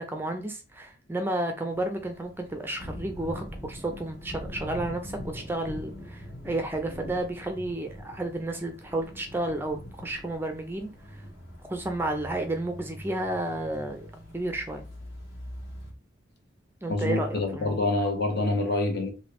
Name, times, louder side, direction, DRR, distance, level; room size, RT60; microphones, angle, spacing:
voice 1, 0.0-11.2 11.7-14.1 14.3-14.8 16.8-17.8, right 1 dB, 10° right, 0.4 m, -32 dB
sound 1, 1.7-15.9, equal, 70° left, 1.5 m, -43 dB
voice 2, 16.9-19.1, left 2 dB, 55° left, 0.9 m, -26 dB
3.3 x 2.7 x 3.0 m
head